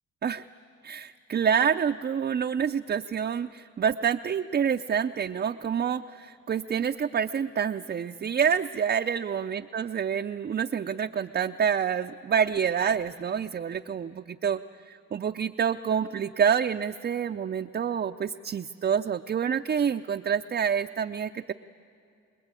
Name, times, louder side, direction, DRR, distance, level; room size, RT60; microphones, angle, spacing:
voice 1, 0.8-14.6 14.9-21.5, right 7 dB, 30° right, 5 dB, 0.5 m, -27 dB
25.0 x 21.0 x 9.0 m, 2.5 s
cardioid pair, 90°, 30 cm